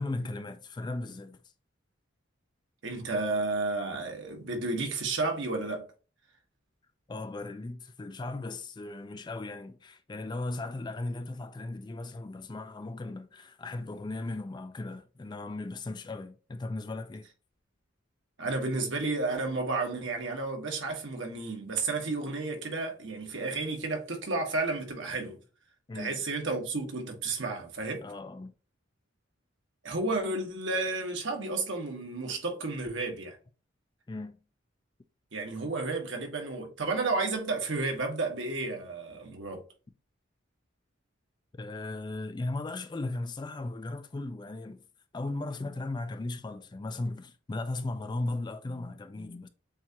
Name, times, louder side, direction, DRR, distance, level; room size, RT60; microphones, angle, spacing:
voice 1, 0.0-1.4 7.1-17.3 25.9-26.2 28.0-28.5 34.1-34.4 41.5-44.8 45.1-49.5, left 2 dB, 20° left, 0.3 m, -37 dB
voice 2, 2.8-5.8 18.4-25.4 25.9-28.0 29.8-33.4 35.3-39.6, right 3 dB, 65° right, 1.3 m, -32 dB
7.2 x 2.5 x 2.8 m
head